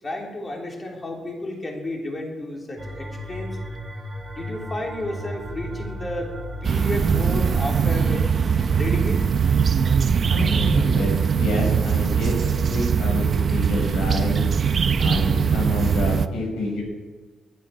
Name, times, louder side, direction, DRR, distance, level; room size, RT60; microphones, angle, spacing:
voice 1, 0.0-3.6 4.3-6.3 6.6-8.2 8.7-9.2, left 1 dB, 20° left, 0 dB, 3.1 m, -32 dB
sound 1, 2.8-10.1, equal, 15° right, 2.8 m, -35 dB
sound 2, 6.6-16.3, right 6 dB, 35° right, 0.6 m, -21 dB
voice 2, 10.3-11.1 11.4-12.4 12.7-14.4 15.0-16.8, left 2 dB, 75° left, 0 dB, 7.3 m, -27 dB
21.0 x 11.5 x 5.7 m, 1.3 s
cardioid pair, 165°, 0 cm